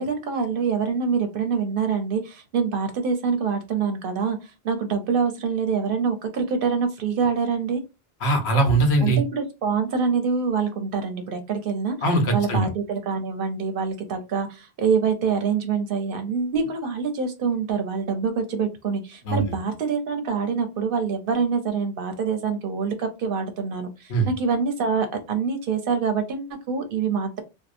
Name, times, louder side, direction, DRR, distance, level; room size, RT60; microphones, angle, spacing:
voice 1, 0.0-7.8 9.0-12.0 12.3-27.4, right 5 dB, 65° right, 6 dB, 0.7 m, -25 dB
voice 2, 8.2-9.2 12.0-12.7 19.3-19.4 24.1-24.3, right 2 dB, 80° left, 3 dB, 1.1 m, -20 dB
2.7 x 2.0 x 2.4 m, 0.26 s
omnidirectional pair, 1.1 m